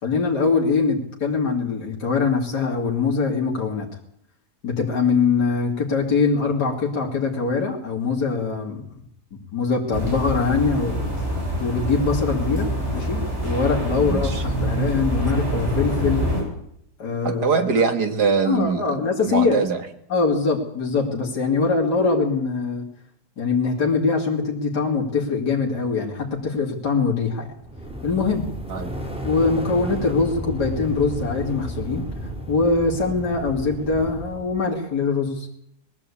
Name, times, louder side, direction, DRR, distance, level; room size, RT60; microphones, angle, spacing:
voice 1, 0.0-3.9 4.6-8.8 9.3-11.0 11.6-16.3 17.0-17.5 18.4-19.6 20.1-22.9 23.4-27.6 28.0-28.5 29.2-32.1 32.5-35.6, left 4 dB, 80° left, -1 dB, 3.2 m, -23 dB
sound 1, 9.9-16.4, equal, 40° right, 8.1 m, -25 dB
voice 2, 14.0-14.4 17.2-19.8 28.7-28.9, right 5 dB, 75° right, 7 dB, 2.5 m, -23 dB
sound 2, 27.6-34.6, right 1 dB, 5° right, 4.3 m, -32 dB
21.0 x 15.0 x 8.5 m, 0.73 s
omnidirectional pair, 1.7 m